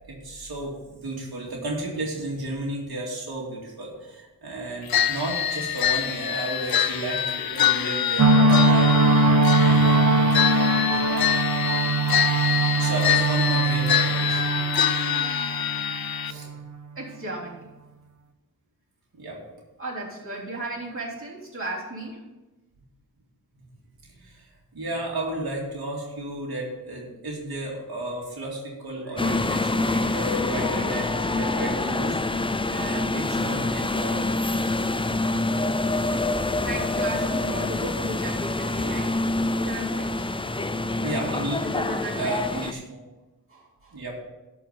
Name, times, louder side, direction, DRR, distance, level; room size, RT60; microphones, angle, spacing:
voice 1, 0.1-10.3 10.9-11.3 12.7-14.4 16.3-16.5 19.1-19.4 24.1-32.2 32.7-34.2 41.0-41.6 42.1-43.0 43.9-44.2, right 1 dB, 85° right, -3 dB, 2.4 m, -33 dB
sound 1, 4.9-16.3, left 9 dB, 75° left, 0.6 m, -25 dB
sound 2, 8.2-16.6, right 2 dB, 55° right, 0.9 m, -21 dB
voice 2, 10.6-11.3 17.0-17.7 19.8-22.2 36.6-39.3 39.6-40.3 41.6-42.4 43.5-44.0, right 1 dB, 35° right, -5 dB, 3.5 m, -35 dB
sound 3, 29.2-42.7, left 2 dB, 15° left, 0.4 m, -26 dB
12.0 x 4.9 x 7.2 m, 1.1 s
wide cardioid pair, 90°, 36 cm